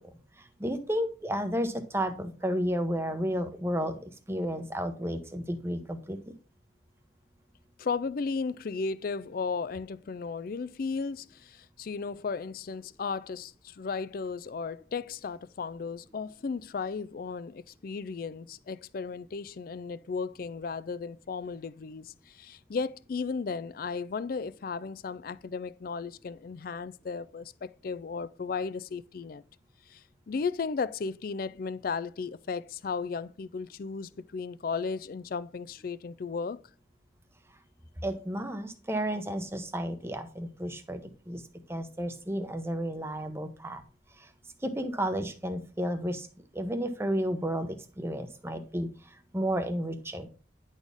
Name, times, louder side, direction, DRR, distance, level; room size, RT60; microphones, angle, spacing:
voice 1, 0.6-6.2 38.0-41.0 41.3-41.4 41.7-43.8 44.6-46.3 46.5-47.7 48.0-48.9 49.3-50.3, equal, 15° right, 0.8 m, -32 dB
voice 2, 7.8-29.4 29.9-36.6, left 5 dB, 50° left, 0.4 m, -35 dB
10.5 x 4.2 x 3.5 m
head